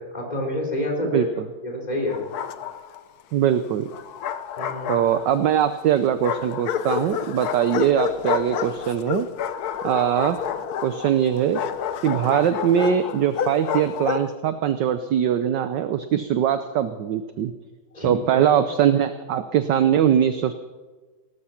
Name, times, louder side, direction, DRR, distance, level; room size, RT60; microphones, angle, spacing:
voice 1, 0.0-1.3 1.6-2.2 4.6-4.9 17.9-18.5, left 1 dB, 20° left, 0 dB, 4.1 m, -28 dB
voice 2, 1.1-1.4 3.3-3.9 4.9-9.3 9.8-10.4 10.8-11.6 12.0-17.5 18.0-20.5, right 9 dB, 65° right, 11 dB, 1.3 m, -21 dB
Bark, 2.1-3.0 3.9-5.5 6.2-14.3, left 9 dB, 60° left, 1.1 m, -29 dB
18.5 x 13.0 x 5.8 m, 1.3 s
omnidirectional pair, 2.3 m